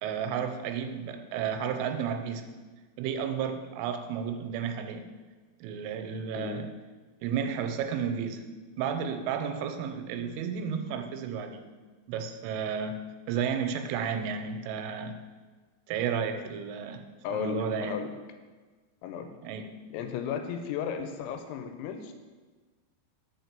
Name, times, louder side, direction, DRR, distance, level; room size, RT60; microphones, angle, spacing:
voice 1, 0.0-2.5 3.0-5.0 5.6-6.7 7.2-8.5 8.8-11.7 12.1-13.0 13.3-15.2 15.9-17.1 17.3-17.9 19.4-19.7, right 7 dB, 85° right, 7 dB, 3.1 m, -32 dB
voice 2, 6.4-6.7 17.2-18.1 19.0-19.3 19.9-22.1, left 7 dB, 80° left, 7 dB, 2.8 m, -34 dB
6.4 x 4.5 x 6.6 m, 1.3 s
omnidirectional pair, 5.6 m